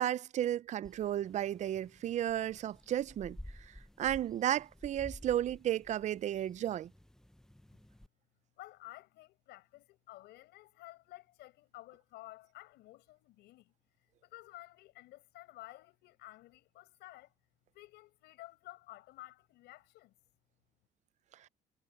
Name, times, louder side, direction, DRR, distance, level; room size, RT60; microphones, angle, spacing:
voice 1, 0.0-3.4 4.0-6.9, right 11 dB, 45° right, 0.5 m, -33 dB
sound 1, 0.8-8.1, left 1 dB, 5° left, 0.7 m, -53 dB
voice 2, 8.6-13.7 14.2-17.3 17.7-20.1, left 17 dB, 85° left, 5.1 m, -53 dB
cardioid pair, 110°, 17 cm